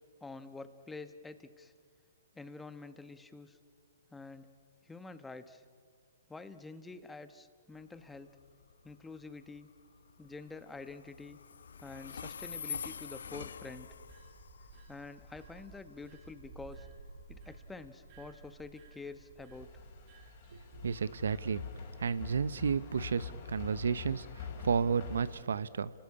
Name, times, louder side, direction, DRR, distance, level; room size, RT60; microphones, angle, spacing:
voice 1, 0.2-1.7 2.3-3.6 4.1-4.5 4.8-5.6 6.3-8.3 8.8-9.7 10.2-11.4 11.8-13.9 14.9-16.9 17.3-19.7, left 3 dB, 5° left, 11 dB, 1.1 m, -47 dB
Train, 7.7-22.5, left 6 dB, 70° left, 0.9 m, -48 dB
sound 1, 13.4-21.0, right 4 dB, 40° right, 3.5 m, -55 dB
sound 2, 19.5-25.4, left 6 dB, 40° left, 5.4 m, -45 dB
voice 2, 20.5-21.6 22.0-25.9, right 6 dB, 70° right, 17 dB, 0.8 m, -32 dB
30.0 x 19.0 x 8.6 m, 2.1 s
figure-of-eight pair, 130°, 0 cm